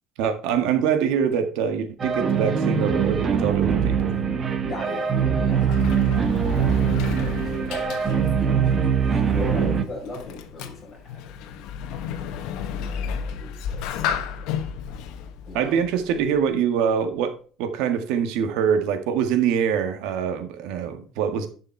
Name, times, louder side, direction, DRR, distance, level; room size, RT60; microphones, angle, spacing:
voice 1, 0.2-4.2 15.5-21.5, right 7 dB, 85° right, 1.6 m, -24 dB
sound 1, 2.0-9.8, right 7 dB, 25° right, 1.1 m, -22 dB
voice 2, 4.6-11.0 11.9-14.5 15.5-15.8, left 2 dB, 15° left, 5.1 m, -40 dB
Sliding door, 5.1-16.6, left 8 dB, 75° left, 1.1 m, -33 dB
11.0 x 5.6 x 4.5 m
cardioid pair, 155°, 0 cm